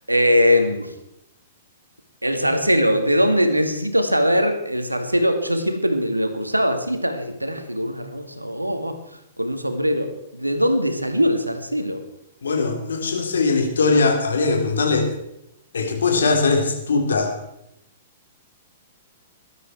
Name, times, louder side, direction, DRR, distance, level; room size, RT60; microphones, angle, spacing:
voice 1, 0.1-0.9 2.2-9.0 9.4-12.0, equal, 90° right, 7 dB, 2.1 m, -21 dB
voice 2, 12.4-15.1 15.7-17.3, left 3 dB, 70° left, 3 dB, 3.8 m, -20 dB
19.5 x 12.5 x 4.5 m, 0.81 s
figure-of-eight pair, 110°, 0 cm